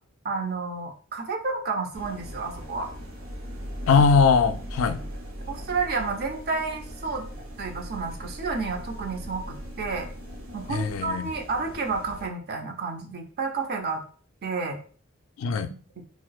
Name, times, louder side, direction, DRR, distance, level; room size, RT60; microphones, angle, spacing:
voice 1, 0.2-2.9 5.5-7.3 7.6-10.1 10.5-14.0 14.4-14.8 16.0-16.1, right 4 dB, 50° right, 0.6 m, -30 dB
sound 1, 1.9-12.3, equal, 85° right, 0.8 m, -38 dB
voice 2, 3.9-5.0 10.7-11.3 15.4-15.7, left 5 dB, 70° left, 0.3 m, -21 dB
4.3 x 2.1 x 2.3 m
head